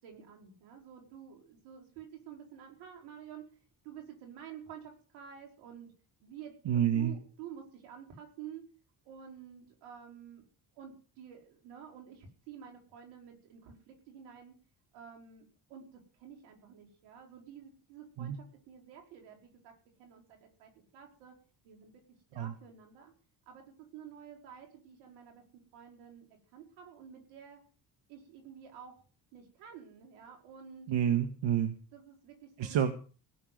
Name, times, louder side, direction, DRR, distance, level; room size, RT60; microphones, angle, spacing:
voice 1, 0.0-3.5 3.8-5.9 6.2-8.6 9.0-10.4 10.7-14.5 14.9-19.7 20.0-21.3 21.6-21.9 22.3-23.1 23.5-26.3 26.5-27.6 28.1-28.9 29.3-30.9 31.9-32.8, right 8 dB, 85° right, 2 dB, 4.9 m, -50 dB
voice 2, 6.7-7.1 18.2-18.4 22.4-22.5 30.9-31.8 32.6-32.9, right 9 dB, 65° right, 7 dB, 1.8 m, -29 dB
17.5 x 7.0 x 9.5 m, 0.39 s
supercardioid pair, 55°, 47 cm